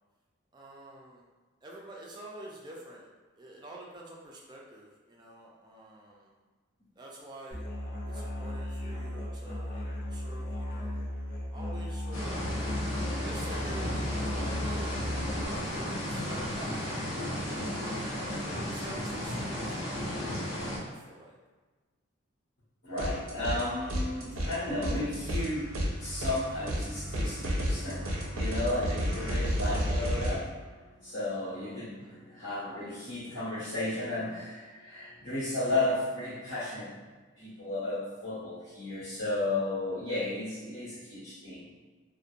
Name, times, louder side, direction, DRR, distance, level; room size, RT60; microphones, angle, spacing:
voice 1, 0.5-1.3 1.6-3.1 3.4-6.3 7.0-7.7 8.0-11.1 11.5-12.4 13.2-14.9 15.3-17.7 17.9-21.3 32.0-32.2, right 1 dB, 20° right, -2 dB, 0.3 m, -48 dB
Musical instrument, 7.5-15.4, left 1 dB, 40° left, 0.5 m, -36 dB
sound 1, 12.1-20.8, equal, 85° left, 0.7 m, -34 dB
voice 2, 22.8-36.9 37.4-41.6, left 2 dB, 60° left, -12 dB, 1.4 m, -34 dB
sound 2, 23.0-23.6 23.9-30.4, equal, 85° right, 0.5 m, -32 dB
2.8 x 2.1 x 2.4 m, 1.3 s
head